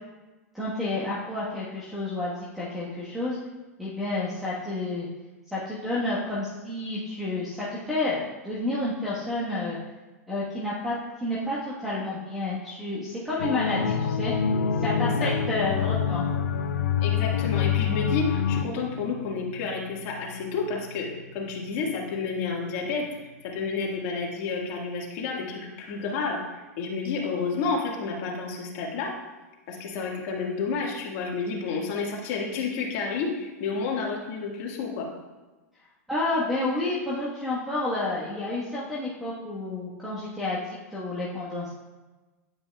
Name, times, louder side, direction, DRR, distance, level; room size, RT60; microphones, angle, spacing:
voice 1, 0.5-3.4 3.8-5.1 5.5-9.8 10.3-14.3 14.8-16.2 36.1-41.7, left 2 dB, ahead, -8 dB, 1.3 m, -30 dB
sound 1, 13.4-18.7, left 7 dB, 80° left, 0.4 m, -26 dB
sound 2, 13.7-23.9, left 5 dB, 65° right, 1.1 m, -37 dB
voice 2, 17.0-23.0 23.4-29.1 29.7-35.1, left 4 dB, 50° left, -2 dB, 1.7 m, -30 dB
9.7 x 5.2 x 2.3 m, 1.2 s
hypercardioid pair, 115°, 9 cm